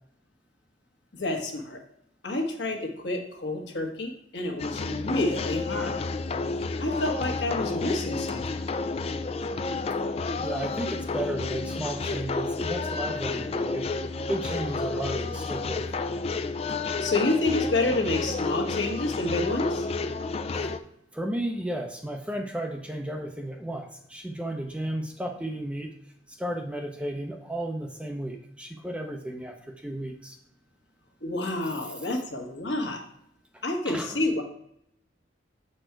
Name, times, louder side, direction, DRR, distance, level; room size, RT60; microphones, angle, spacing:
voice 1, 1.1-1.8 2.2-6.0 6.8-8.4 17.0-19.9 31.2-33.0 33.6-34.4, left 2 dB, 65° left, 2 dB, 1.3 m, -28 dB
sound 1, 4.6-20.8, left 3 dB, 30° left, 0.3 m, -31 dB
voice 2, 10.4-13.9 14.3-15.8 20.5-20.7 21.1-25.9 26.3-30.4 33.5-34.2, right 1 dB, 5° right, 2 dB, 0.6 m, -34 dB
7.7 x 4.4 x 4.6 m, 0.74 s
head